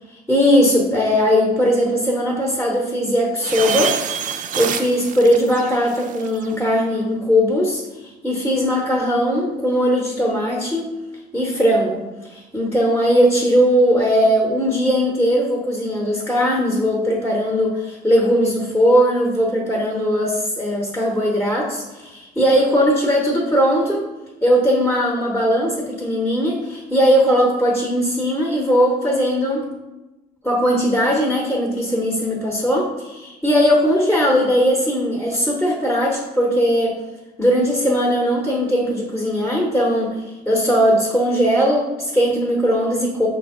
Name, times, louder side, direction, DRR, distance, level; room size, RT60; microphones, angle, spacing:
voice 1, 0.3-4.0 4.6-10.9 11.3-24.1 24.4-29.7 30.4-37.0 37.4-40.2 40.5-43.3, equal, 10° left, -2 dB, 0.8 m, -19 dB
sound 1, 3.4-6.5, right 7 dB, 50° right, 0.4 m, -27 dB
5.5 x 2.6 x 3.6 m, 1.1 s
cardioid pair, 110°, 17 cm